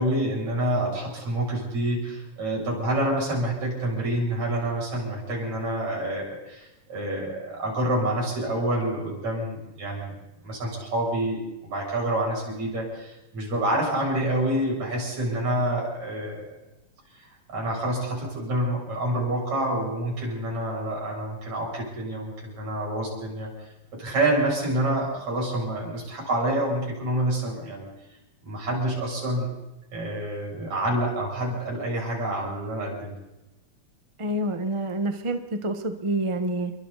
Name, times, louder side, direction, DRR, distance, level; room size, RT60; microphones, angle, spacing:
voice 1, 0.0-10.1 10.4-16.5 17.2-27.9 28.4-29.5 29.9-33.2, right 1 dB, 65° right, -3 dB, 8.7 m, -27 dB
voice 2, 34.2-36.7, right 1 dB, 45° right, 7 dB, 0.3 m, -27 dB
29.5 x 23.5 x 4.1 m, 0.98 s
omnidirectional pair, 3.5 m